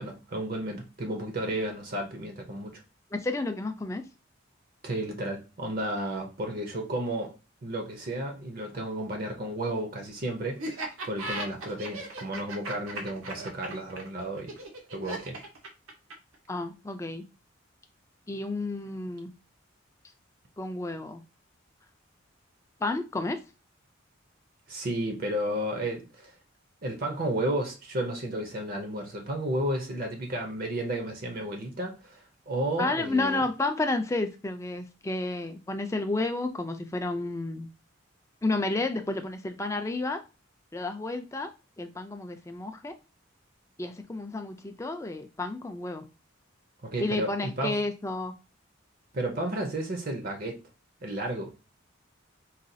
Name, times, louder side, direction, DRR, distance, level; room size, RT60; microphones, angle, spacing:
voice 1, 0.0-2.8 4.8-7.4 7.6-14.5 14.9-15.4 24.7-26.3 26.8-32.2 32.5-33.4 46.8-47.8 49.1-50.6 51.0-51.5, right 1 dB, 45° right, 0.6 m, -32 dB
voice 2, 3.1-4.0 16.5-17.2 18.3-19.3 20.6-21.2 22.8-23.4 32.8-37.7 38.4-40.2 40.7-41.5 41.8-42.9 43.8-46.0 47.0-48.3, left 2 dB, 15° left, 0.4 m, -31 dB
Laughter, 10.6-16.4, right 2 dB, 80° right, 0.9 m, -37 dB
4.0 x 2.3 x 2.6 m
head